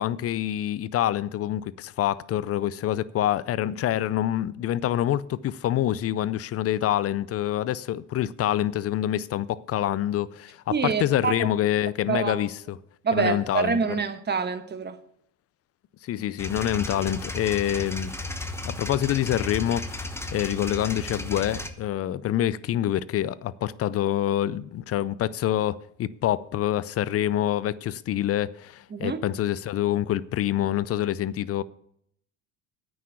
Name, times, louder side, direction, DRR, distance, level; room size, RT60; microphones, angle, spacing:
voice 1, 0.0-12.8 13.1-14.0 16.0-18.1 18.6-31.6, left 12 dB, 40° left, 0.5 m, -26 dB
voice 2, 10.7-11.5 12.1-12.5 13.0-15.0 28.9-29.2, right 5 dB, 30° right, 1.2 m, -26 dB
sound 1, 16.4-21.7, left 1 dB, 5° left, 1.1 m, -34 dB
9.1 x 6.3 x 8.5 m
supercardioid pair, 85°, 37 cm